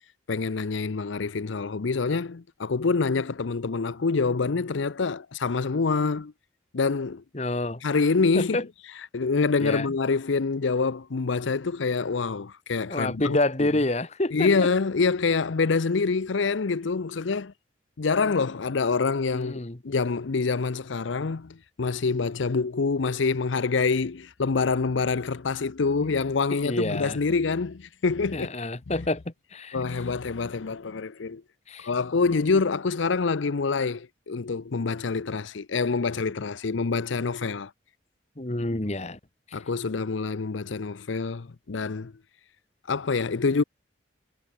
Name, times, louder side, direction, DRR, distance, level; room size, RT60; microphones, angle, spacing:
voice 1, 0.3-6.3 6.7-7.2 7.8-8.6 9.1-13.4 14.3-17.5 18.0-28.5 29.7-31.4 31.8-37.7 39.5-42.1 42.9-43.6, left 4 dB, 80° left, 0.6 m, -26 dB
voice 2, 7.3-7.8 8.3-8.6 9.6-9.9 12.9-14.7 19.3-19.8 26.0-26.1 26.5-27.2 28.3-29.8 31.7-31.9 38.4-39.2 39.5-39.6, left 2 dB, 35° left, 1.2 m, -28 dB
head